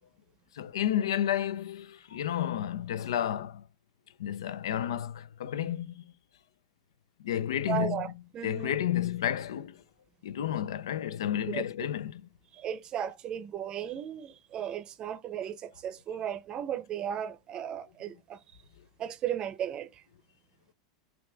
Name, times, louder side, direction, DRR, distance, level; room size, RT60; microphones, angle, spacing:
voice 1, 0.5-3.6 4.2-5.9 7.2-8.0 8.4-9.8 10.2-12.3, left 11 dB, 85° left, 0.4 m, -31 dB
voice 2, 7.7-8.8 11.5-11.6 12.5-18.4 19.0-20.0, right 9 dB, 35° right, 0.6 m, -35 dB
5.7 x 2.4 x 3.3 m
hypercardioid pair, 115°, 2 cm